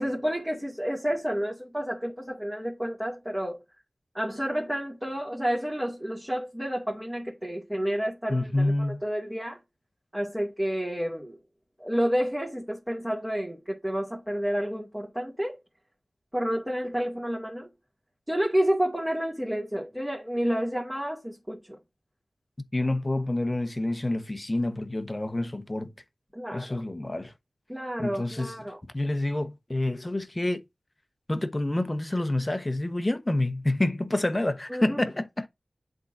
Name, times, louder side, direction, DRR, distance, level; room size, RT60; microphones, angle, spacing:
voice 1, 0.0-3.6 4.1-9.6 10.1-11.4 11.8-15.6 16.3-17.7 18.3-21.6 26.4-26.8 27.7-28.8 34.7-35.0, equal, 10° right, 2.2 m, -30 dB
voice 2, 8.3-9.0 22.7-25.9 26.5-27.3 28.0-28.6 28.9-30.6 31.3-35.5, left 1 dB, 25° left, 1.1 m, -28 dB
11.0 x 3.8 x 2.6 m
wide cardioid pair, 75°, 0 cm